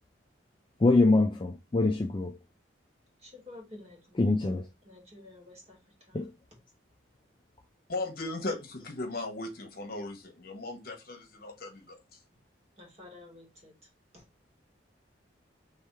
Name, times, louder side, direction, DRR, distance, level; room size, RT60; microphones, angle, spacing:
voice 1, 0.8-2.4 4.2-4.6 6.1-6.3, left 2 dB, 25° left, 0.3 m, -24 dB
voice 2, 3.2-4.5 4.9-5.8 6.1-6.2 12.8-13.7 14.1-14.2, left 2 dB, 30° right, 1.8 m, -50 dB
voice 3, 7.9-12.0, left 2 dB, 50° left, 1.1 m, -37 dB
3.5 x 3.2 x 4.5 m
head